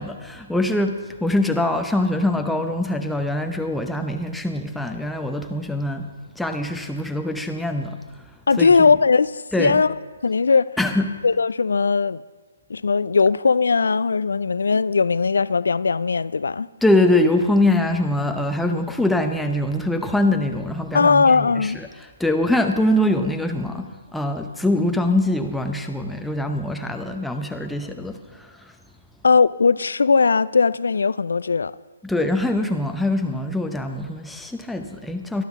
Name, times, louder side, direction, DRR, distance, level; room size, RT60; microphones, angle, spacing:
voice 1, 0.0-6.1 6.4-8.0 8.6-8.7 9.5-9.8 10.8-11.1 16.8-28.7 32.0-35.4, left 1 dB, ahead, 0.7 m, -23 dB
voice 2, 8.5-9.9 10.2-10.7 11.2-12.2 12.7-16.7 20.9-21.8 29.2-31.7, left 4 dB, 65° left, 0.4 m, -19 dB
22.0 x 12.5 x 3.6 m
figure-of-eight pair, 135°, 0 cm